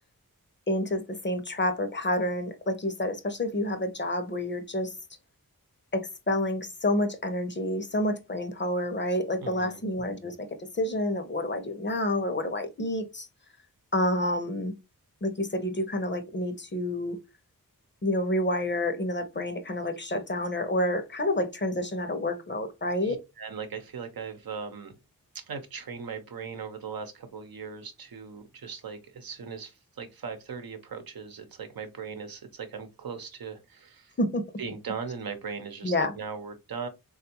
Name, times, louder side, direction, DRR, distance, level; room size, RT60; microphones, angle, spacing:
voice 1, 0.7-4.9 5.9-13.3 13.9-14.7 15.2-17.2 18.0-23.2 34.2-34.4 35.8-36.1, left 1 dB, 30° left, 0.7 m, -29 dB
voice 2, 9.4-9.8 23.0-24.9 25.3-34.2 34.6-36.9, right 6 dB, 75° right, 0.7 m, -39 dB
3.4 x 2.3 x 2.8 m
cardioid pair, 50°, 35 cm